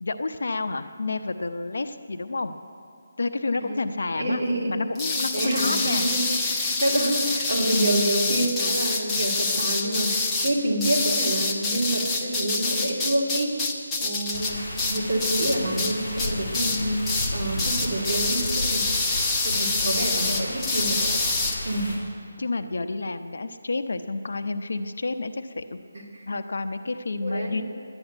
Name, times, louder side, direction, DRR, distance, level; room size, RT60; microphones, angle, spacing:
voice 1, 0.0-2.5 3.2-4.4 4.7-6.1 19.7-20.5 22.4-25.8 26.3-27.6, left 3 dB, 65° left, 9 dB, 0.7 m, -30 dB
voice 2, 4.1-4.7 5.3-13.5 14.0-14.6 14.9-18.8 19.4-21.2 21.6-21.9 25.9-26.2 27.2-27.6, right 1 dB, 35° right, -4 dB, 2.6 m, -27 dB
sound 1, 4.9-15.9 16.2-16.8 17.0-17.3 17.6-21.5, left 3 dB, 10° left, 0.7 m, -26 dB
sound 2, 14.3-22.0, left 1 dB, 25° left, 4.1 m, -33 dB
11.5 x 9.9 x 9.0 m, 2.3 s
hypercardioid pair, 175°, 0 cm